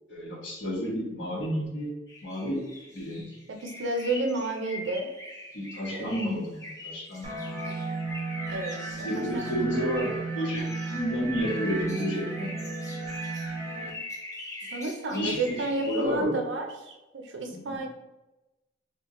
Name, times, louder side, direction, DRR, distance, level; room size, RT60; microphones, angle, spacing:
voice 1, 0.1-1.9 2.2-2.6 2.9-3.2 5.5-7.8 9.0-12.5 15.1-16.3 17.5-17.8, equal, 80° left, -7 dB, 1.1 m, -31 dB
sound 1, 2.1-16.0, left 1 dB, 20° left, 0.8 m, -43 dB
voice 2, 3.5-5.1 5.9-6.4 8.5-9.9 14.7-17.9, right 2 dB, 85° right, 3 dB, 0.5 m, -31 dB
sound 2, 7.2-13.9, right 3 dB, 35° right, 0.7 m, -34 dB
2.9 x 2.4 x 3.7 m, 1.0 s
head